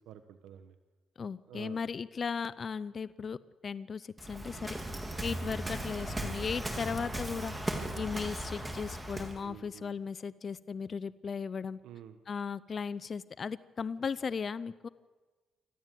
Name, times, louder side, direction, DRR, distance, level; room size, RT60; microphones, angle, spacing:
voice 1, 0.1-0.7 1.5-1.8 9.4-10.0 11.8-12.2, right 10 dB, 85° right, 10 dB, 1.1 m, -49 dB
voice 2, 1.2-3.4 3.6-4.7 5.2-7.5 8.0-11.8 12.3-14.9, left 6 dB, 45° left, 16 dB, 0.6 m, -36 dB
Waves surf, 4.2-9.4, right 1 dB, 10° right, 3.8 m, -37 dB
26.0 x 14.5 x 9.2 m, 1.3 s
cardioid pair, 90°, 0 cm